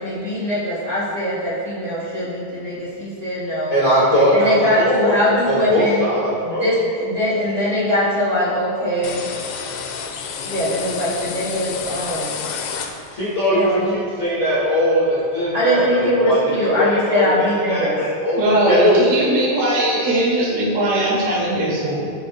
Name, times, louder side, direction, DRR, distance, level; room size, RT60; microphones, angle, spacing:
voice 1, 0.0-3.8 4.1-6.0 6.4-9.2 10.4-12.5 13.5-13.9 15.5-18.0 18.7-19.0, equal, 45° right, -8 dB, 0.9 m, -22 dB
voice 2, 3.7-5.2 5.4-6.7 13.1-17.3 17.7-18.4 18.7-19.3, equal, 75° left, -9 dB, 1.1 m, -19 dB
sound 1, 9.0-13.4, left 6 dB, 90° left, 3.1 m, -30 dB
voice 3, 18.4-22.1, right 1 dB, 85° right, -6 dB, 4.8 m, -19 dB
17.5 x 7.2 x 2.2 m, 2.4 s
omnidirectional pair, 5.5 m